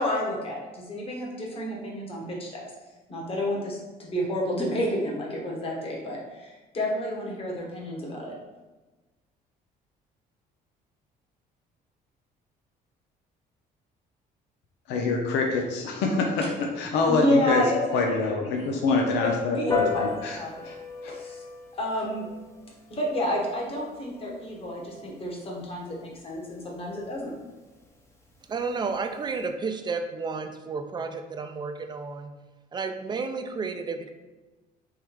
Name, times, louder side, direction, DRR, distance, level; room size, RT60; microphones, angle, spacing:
voice 1, 0.0-2.6 3.1-8.3 17.1-18.0 18.6-18.7 19.2-20.1 20.4-20.6 21.0-21.4 21.8-22.3 22.9-27.3, left 1 dB, 35° left, -2 dB, 1.4 m, -30 dB
voice 2, 14.9-17.6 17.9-20.4 20.6-20.7 21.0-21.1, left 3 dB, 85° left, 1 dB, 0.7 m, -25 dB
Piano, 19.7-29.4, left 4 dB, 15° left, 0.8 m, -37 dB
voice 3, 28.5-32.3 32.7-34.1, right 4 dB, 25° right, 6 dB, 0.5 m, -32 dB
3.7 x 3.2 x 4.6 m, 1.2 s
cardioid pair, 110°, 17 cm